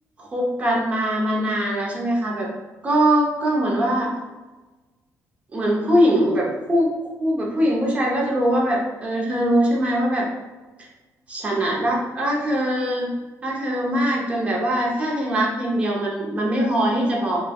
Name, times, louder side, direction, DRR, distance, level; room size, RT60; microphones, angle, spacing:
voice 1, 0.2-2.5 2.8-4.1 5.5-6.9 7.2-10.3 11.3-13.1 13.4-17.5, equal, 25° right, -2 dB, 0.7 m, -22 dB
4.4 x 2.2 x 2.3 m, 1.2 s
cardioid pair, 145°, 6 cm